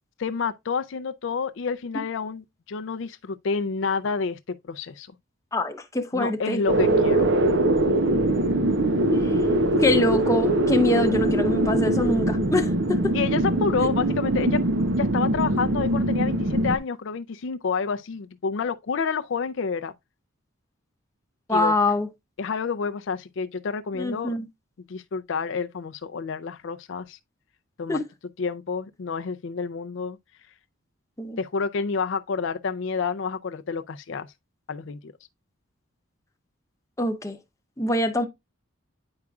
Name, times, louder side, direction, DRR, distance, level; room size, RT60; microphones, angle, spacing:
voice 1, 0.2-4.4 4.7-5.1 6.1-7.3 13.1-14.6 15.0-19.9 21.5-21.7 22.4-24.4 24.9-27.2 27.8-28.0 28.4-30.2 31.4-34.3 34.7-35.1, left 5 dB, 65° left, 0.4 m, -29 dB
voice 2, 5.5-6.6 9.1-9.5 9.8-13.1 21.5-22.1 24.0-24.4 27.9-28.0 31.2-31.4 37.0-37.4 37.8-38.3, left 1 dB, 15° left, 0.7 m, -24 dB
sound 1, 6.7-16.8, right 1 dB, 60° right, 0.8 m, -22 dB
9.6 x 4.8 x 2.3 m
head